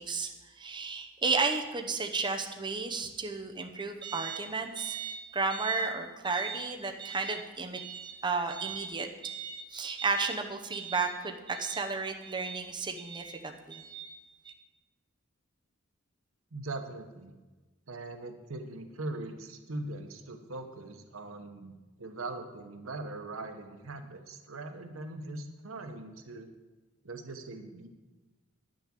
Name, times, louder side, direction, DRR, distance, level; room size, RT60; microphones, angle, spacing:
voice 1, 0.0-14.1 14.4-14.5, right 4 dB, 25° right, 3 dB, 0.9 m, -33 dB
voice 2, 16.5-17.3 17.9-21.7 22.0-26.5 27.0-27.9, right 2 dB, 85° right, 7 dB, 1.1 m, -41 dB
10.5 x 6.6 x 7.5 m, 1.2 s
head